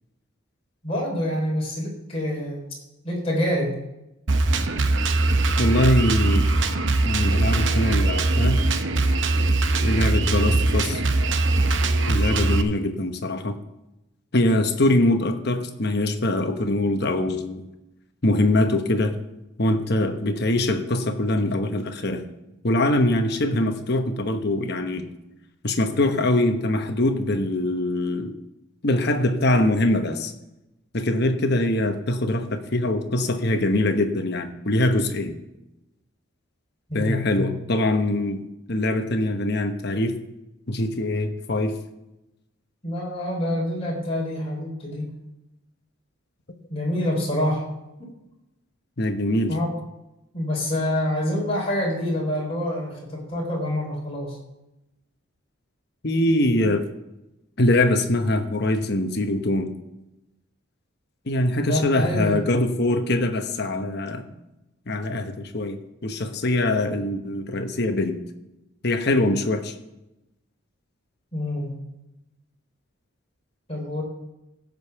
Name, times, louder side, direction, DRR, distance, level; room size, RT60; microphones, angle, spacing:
voice 1, 0.8-2.6 3.0-3.8 36.9-37.5 42.8-45.1 46.7-47.6 48.0-48.1 49.5-49.7 50.3-54.4 61.6-62.4 71.3-71.7 73.7-74.0, left 1 dB, 30° left, -3 dB, 3.6 m, -26 dB
Drum kit, 4.3-12.6, right 2 dB, 60° right, 0.8 m, -21 dB
voice 2, 5.6-6.5 7.0-8.6 9.8-11.0 12.1-13.6 14.3-17.6 18.2-19.1 19.6-22.2 22.6-25.0 25.6-28.3 28.8-30.3 30.9-35.4 36.9-40.2 40.7-41.8 49.0-49.5 56.0-56.9 57.6-59.7 61.3-64.3 64.9-68.2 68.8-69.7, left 1 dB, 50° left, 6 dB, 1.1 m, -23 dB
15.5 x 5.4 x 6.9 m, 0.92 s
head